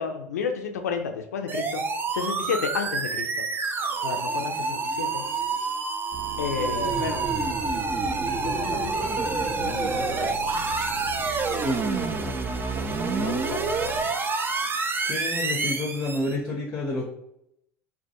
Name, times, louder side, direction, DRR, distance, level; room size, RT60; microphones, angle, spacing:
voice 1, 0.0-1.8 2.1-3.3 4.0-5.2 6.4-7.2 8.4-8.9 9.6-10.4 13.2-13.7, left 6 dB, 85° left, 5 dB, 0.4 m, -31 dB
sound 1, 1.5-16.4, right 4 dB, 25° right, 0.3 m, -28 dB
sound 2, 6.1-14.0, right 5 dB, 65° right, 0.7 m, -40 dB
voice 2, 15.0-17.1, left 2 dB, 25° left, -1 dB, 0.6 m, -29 dB
2.2 x 2.2 x 2.8 m, 0.78 s
hypercardioid pair, 75°, 8 cm